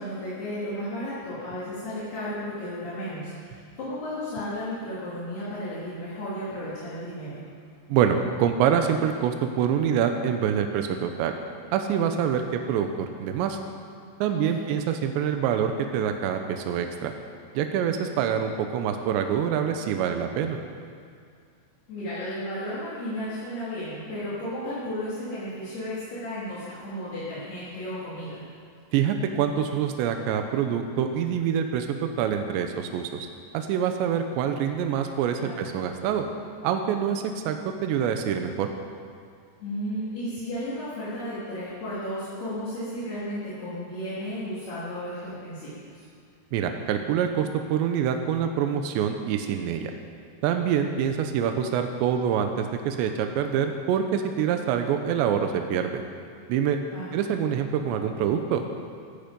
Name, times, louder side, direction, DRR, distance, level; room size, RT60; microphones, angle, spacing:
voice 1, 0.0-7.4 14.3-14.8 21.9-28.4 35.4-35.7 39.6-46.1 56.9-57.5, equal, 65° left, -11 dB, 5.4 m, -34 dB
voice 2, 7.9-11.3 11.7-13.6 14.2-17.1 17.5-20.6 28.9-33.3 33.5-36.3 36.6-38.7 46.5-49.9 50.4-56.0 56.5-56.8 57.1-58.6, right 8 dB, 85° right, 6 dB, 3.1 m, -26 dB
17.5 x 14.5 x 5.3 m, 2.2 s
omnidirectional pair, 5.0 m